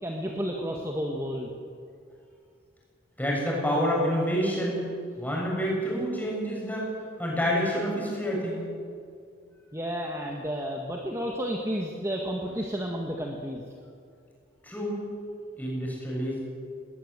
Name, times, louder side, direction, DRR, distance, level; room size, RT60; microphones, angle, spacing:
voice 1, 0.0-1.5 9.7-13.6, equal, 15° right, 0 dB, 1.7 m, -31 dB
voice 2, 3.2-4.8 5.2-6.9 7.2-8.6 14.6-15.0 15.6-16.4, equal, 10° left, -3 dB, 7.1 m, -28 dB
20.5 x 19.5 x 8.2 m, 2.3 s
head